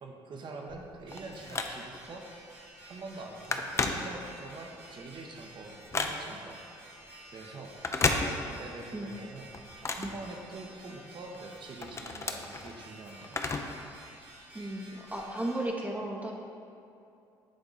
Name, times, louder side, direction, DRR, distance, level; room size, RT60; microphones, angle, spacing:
voice 1, 0.0-2.3 2.9-6.6 7.3-7.8 8.4-9.5 9.9-13.6 14.5-14.8, right 3 dB, 50° right, 2 dB, 0.9 m, -45 dB
Telephone, 0.7-2.1 2.6-2.8 3.1-4.6 5.0-6.5 7.7-8.8 9.1-10.9 11.3-13.9 14.1-14.2 15.1-15.2, left 3 dB, 25° left, 0.6 m, -33 dB
sound 1, 1.1-15.7, right 1 dB, 80° right, 1.3 m, -52 dB
voice 2, 14.5-16.3, right 1 dB, 15° right, -1 dB, 0.8 m, -34 dB
8.7 x 3.6 x 4.0 m, 2.6 s
hypercardioid pair, 60°, 10 cm